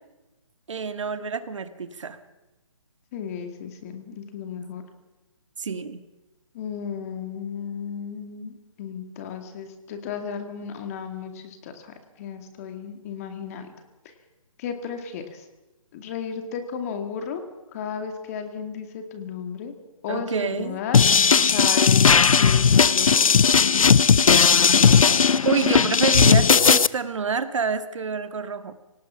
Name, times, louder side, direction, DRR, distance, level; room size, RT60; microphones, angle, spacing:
voice 1, 0.7-2.2 5.6-6.0 20.1-20.8 25.4-28.7, right 5 dB, 65° right, 10 dB, 1.9 m, -27 dB
voice 2, 3.1-4.8 6.5-13.7 14.0-14.1 14.6-15.5 15.9-17.4 17.7-19.7 20.0-21.0 21.5-22.1 22.4-23.4, left 7 dB, 25° left, 7 dB, 2.2 m, -34 dB
sound 1, 20.9-26.9, left 6 dB, 85° left, 0.6 m, -16 dB
27.0 x 18.5 x 5.8 m, 1.1 s
hypercardioid pair, 160°, 17 cm